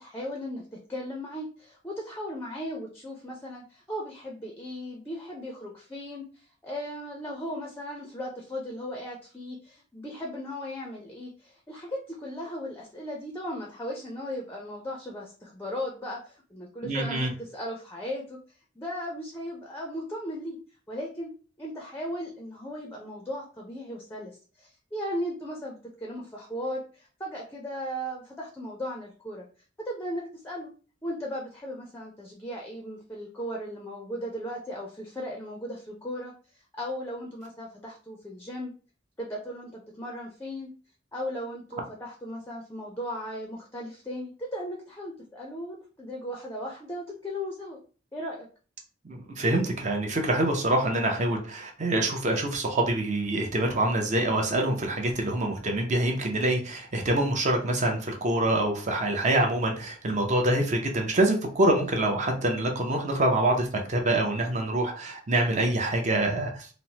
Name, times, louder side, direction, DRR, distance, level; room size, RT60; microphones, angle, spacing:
voice 1, 0.0-18.4 18.8-20.6 20.9-21.3 21.6-29.5 29.8-30.7 31.0-38.7 39.2-40.7 41.1-47.8 48.1-48.5, equal, 15° left, -1 dB, 0.4 m, -37 dB
voice 2, 16.8-17.3 49.0-66.7, right 1 dB, 40° right, 2 dB, 0.5 m, -25 dB
3.0 x 2.0 x 2.7 m, 0.38 s
head